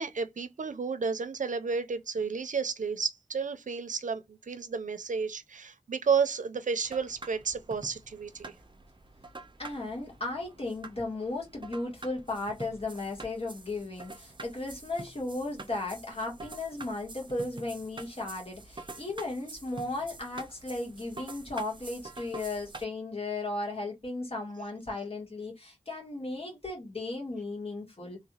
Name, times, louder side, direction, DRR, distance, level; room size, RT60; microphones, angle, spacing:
voice 1, 0.0-8.5, right 5 dB, 85° right, 0.5 m, -32 dB
sound 1, 6.8-22.8, right 3 dB, 40° right, 0.6 m, -47 dB
voice 2, 9.6-28.2, left 2 dB, 50° left, 1.6 m, -35 dB
3.1 x 3.1 x 2.4 m
wide cardioid pair, 70°, 13 cm